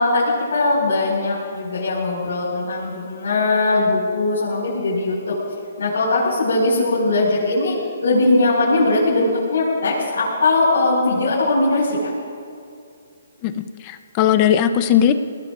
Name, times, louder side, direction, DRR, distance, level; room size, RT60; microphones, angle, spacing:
voice 1, 0.0-5.4 5.8-7.8 8.0-12.1, left 2 dB, 70° left, -7 dB, 5.2 m, -20 dB
voice 2, 13.4-15.1, left 9 dB, 20° left, 10 dB, 0.6 m, -18 dB
28.5 x 19.0 x 2.5 m, 2.4 s
hypercardioid pair, 175°, 0 cm